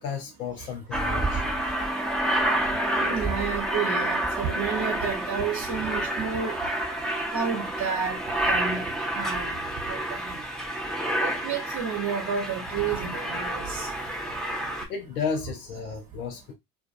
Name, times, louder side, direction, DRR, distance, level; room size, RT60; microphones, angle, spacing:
voice 1, 0.0-1.4 2.4-2.8 7.1-7.3 14.9-16.5, left 6 dB, 90° left, 0.7 m, -33 dB
Aircraft, 0.9-14.9, right 1 dB, ahead, 0.7 m, -29 dB
voice 2, 3.0-6.6 7.3-8.9 9.1-9.6 9.9-10.4 11.2-13.9, right 6 dB, 40° right, 0.8 m, -31 dB
2.5 x 2.4 x 2.4 m
hypercardioid pair, 65°, 43 cm